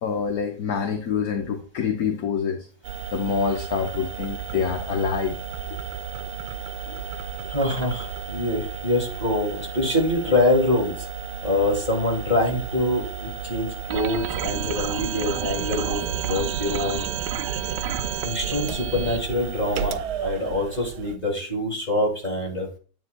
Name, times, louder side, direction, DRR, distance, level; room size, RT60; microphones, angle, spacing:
voice 1, 0.0-2.7 3.1-5.4 5.7-5.8, left 6 dB, 60° left, 4 dB, 1.1 m, -26 dB
sound 1, 2.8-21.2, right 8 dB, 85° right, 1.4 m, -34 dB
voice 2, 7.5-11.0 11.4-17.1 18.2-22.7, left 1 dB, 20° left, 0 dB, 2.4 m, -25 dB
sound 2, 13.9-19.2, right 9 dB, 70° right, 1.1 m, -30 dB
9.9 x 7.8 x 2.2 m, 0.39 s
omnidirectional pair, 2.2 m